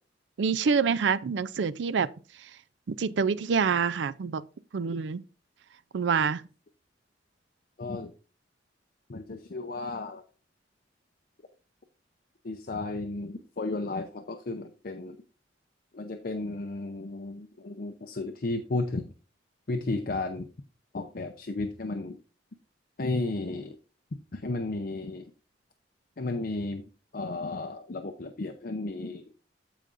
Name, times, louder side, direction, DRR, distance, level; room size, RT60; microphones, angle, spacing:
voice 1, 0.4-2.1 2.9-4.4 4.7-5.2 5.9-6.4, right 6 dB, 75° right, 0.4 m, -26 dB
voice 2, 7.8-8.1 9.1-10.2 12.4-15.2 15.9-19.0 19.7-20.5 20.9-22.2 23.0-23.8 24.3-25.3 26.2-26.8 27.1-29.2, left 2 dB, 50° left, 0.6 m, -33 dB
14.0 x 5.0 x 2.5 m
head